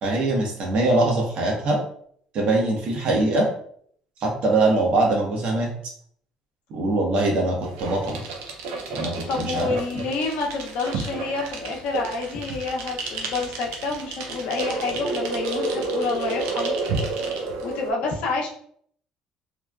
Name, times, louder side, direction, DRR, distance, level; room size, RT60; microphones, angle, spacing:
voice 1, 0.0-1.8 2.3-3.5 4.2-5.7 6.7-8.2 8.9-9.7, right 2 dB, 60° right, -1 dB, 1.0 m, -22 dB
sound 1, 7.6-17.9, right 3 dB, 85° right, 0.5 m, -30 dB
voice 2, 9.3-16.8 17.6-18.5, left 4 dB, 75° left, 0 dB, 0.7 m, -28 dB
3.1 x 2.1 x 2.4 m, 0.62 s
supercardioid pair, 80°, 2 cm